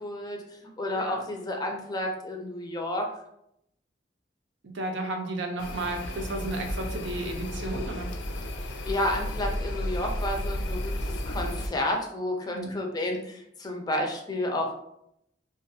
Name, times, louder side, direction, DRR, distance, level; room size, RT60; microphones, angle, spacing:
voice 1, 0.0-3.1 8.9-14.7, left 1 dB, 20° left, 1 dB, 0.4 m, -31 dB
voice 2, 4.6-8.1 12.5-12.7, right 2 dB, 90° right, 3 dB, 0.5 m, -33 dB
sound 1, 5.6-11.7, left 1 dB, 90° left, 0.4 m, -33 dB
2.4 x 2.4 x 2.7 m, 0.77 s
head